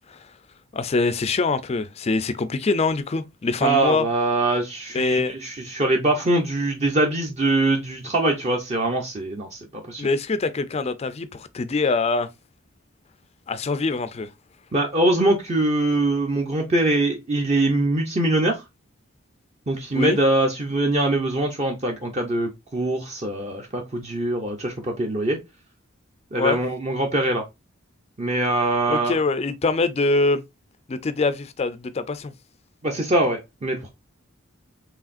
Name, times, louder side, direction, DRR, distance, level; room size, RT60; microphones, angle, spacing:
voice 1, 0.7-4.1 4.9-5.4 10.0-12.3 13.5-14.3 19.9-20.2 26.3-26.6 28.9-30.4 30.9-32.3, left 3 dB, 30° left, 0.4 m, -24 dB
voice 2, 3.6-10.1 14.7-18.6 19.7-25.4 26.3-27.4 28.2-29.2 32.8-33.9, right 2 dB, 35° right, 0.7 m, -23 dB
4.8 x 3.3 x 2.5 m
head